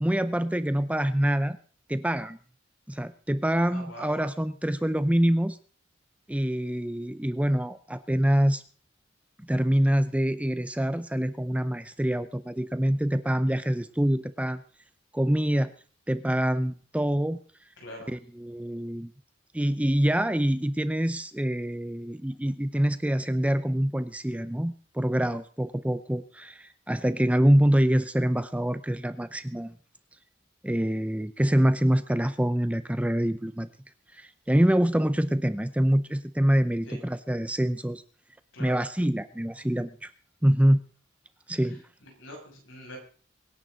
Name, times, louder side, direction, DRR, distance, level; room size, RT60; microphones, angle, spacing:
voice 1, 0.0-1.6 1.9-2.4 2.9-5.6 6.3-8.6 9.4-14.6 15.1-15.7 16.1-17.4 18.1-19.1 19.5-29.7 30.6-33.7 34.1-38.0 38.6-40.1 40.4-40.8 41.5-41.8, equal, 5° right, 12 dB, 0.6 m, -25 dB
voice 2, 3.6-4.2 17.8-18.2 36.8-37.0 38.5-38.8 41.6-41.8 42.2-43.0, equal, 75° left, 0 dB, 7.0 m, -43 dB
24.0 x 10.5 x 4.0 m, 0.40 s
head